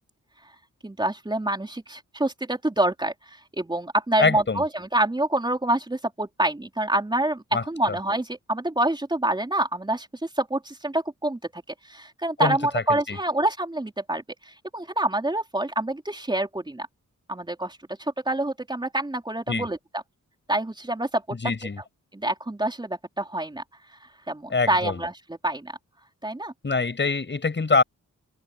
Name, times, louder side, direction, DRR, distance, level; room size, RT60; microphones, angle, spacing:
voice 1, 0.8-10.1 10.4-11.4 11.9-16.9 17.3-20.0 20.5-21.4 22.1-23.6 24.3-25.1 25.4-25.7 26.2-26.5, right 1 dB, 15° right, 4.2 m, -27 dB
voice 2, 4.2-4.6 7.5-7.6 7.9-8.0 12.4-13.2 19.5-19.7 21.4-21.8 24.5-25.0 26.6-27.8, left 4 dB, 35° left, 7.2 m, -24 dB
wide cardioid pair, 140°, 31 cm